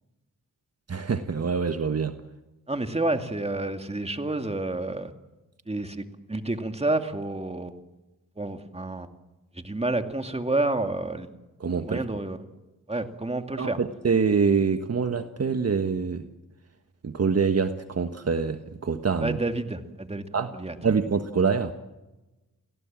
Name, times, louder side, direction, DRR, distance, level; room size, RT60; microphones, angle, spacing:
voice 1, 0.9-2.1 11.6-12.0 13.6-16.2 17.0-19.4 20.3-20.5 20.8-21.7, right 5 dB, 45° right, 7 dB, 1.5 m, -25 dB
voice 2, 2.7-5.1 5.7-7.8 8.4-9.1 9.6-11.3 11.8-12.4 12.9-13.8 19.2-20.3 20.5-20.8, right 2 dB, 15° right, 6 dB, 2.4 m, -29 dB
29.0 x 18.0 x 7.6 m, 1.0 s
cardioid pair, 75°, 35 cm